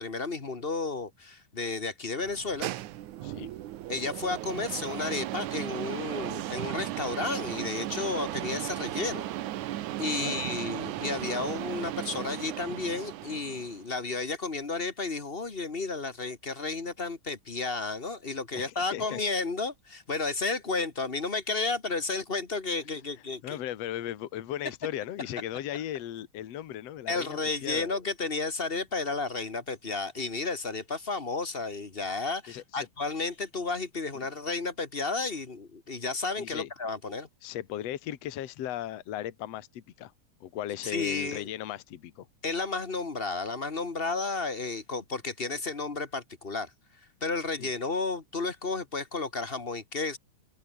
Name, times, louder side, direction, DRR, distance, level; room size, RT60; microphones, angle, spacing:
voice 1, 0.0-2.7 3.9-9.3 10.0-23.6 27.1-37.3 40.8-41.5 42.4-46.7 47.2-50.2, left 3 dB, 25° left, 1.2 m, -32 dB
sound 1, 2.2-13.8, right 14 dB, 70° right, 2.4 m, -36 dB
voice 2, 10.2-10.6 18.5-19.2 23.4-27.9 32.5-32.9 34.2-34.3 36.4-36.7 37.4-40.1 40.4-42.3 47.6-47.7, left 12 dB, 60° left, 2.4 m, -37 dB
open air
omnidirectional pair, 3.7 m